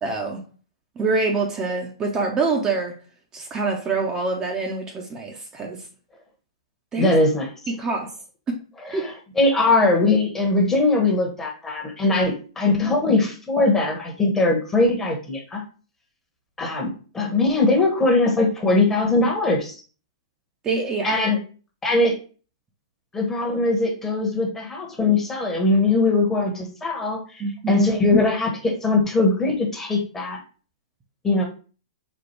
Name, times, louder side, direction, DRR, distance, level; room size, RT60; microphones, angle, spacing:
voice 1, 0.0-0.4 1.0-2.9 3.3-5.8 6.9-7.1 7.7-8.1 8.5-8.6 8.9-9.0 20.6-21.2 27.4-27.9 28.1-28.2, right 3 dB, 20° right, 1 dB, 0.7 m, -25 dB
voice 2, 7.0-7.5 8.8-15.6 16.6-19.8 21.0-21.4 21.8-22.1 23.1-30.4 31.2-31.4, left 2 dB, 15° left, 1 dB, 1.1 m, -21 dB
4.4 x 2.3 x 4.4 m, 0.37 s
hypercardioid pair, 120°, 3 cm